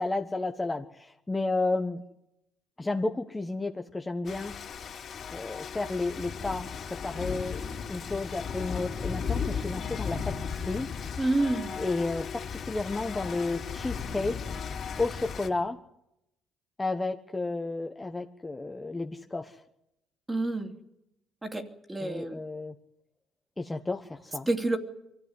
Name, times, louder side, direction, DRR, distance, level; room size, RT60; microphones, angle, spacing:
voice 1, 0.0-2.0 2.8-4.6 5.3-7.6 7.9-10.9 11.8-14.6 15.0-15.8 16.8-19.6 22.0-22.7 23.6-24.5, left 3 dB, 15° left, 4 dB, 1.3 m, -32 dB
Rain, 4.2-15.5, left 6 dB, 45° left, 3.5 m, -36 dB
voice 2, 11.2-11.7 20.3-20.7 21.4-22.4 24.5-24.8, right 2 dB, 15° right, 6 dB, 2.8 m, -28 dB
23.5 x 15.5 x 9.7 m, 0.83 s
cardioid pair, 105°, 0 cm